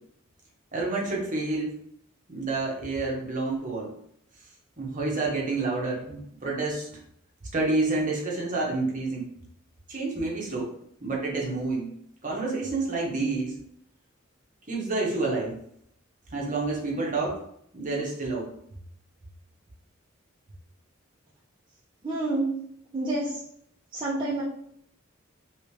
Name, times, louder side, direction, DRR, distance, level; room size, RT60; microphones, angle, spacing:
voice 1, 0.7-1.7 2.3-3.9 4.8-6.9 7.5-9.2 9.9-10.7 11.0-11.9 12.2-13.5 14.7-15.6 16.3-17.4 17.7-18.5, right 3 dB, 40° right, -2 dB, 1.0 m, -28 dB
voice 2, 22.0-22.5 22.9-23.4 23.9-24.4, right 2 dB, 25° right, -7 dB, 0.6 m, -28 dB
3.2 x 3.1 x 3.2 m, 0.69 s
head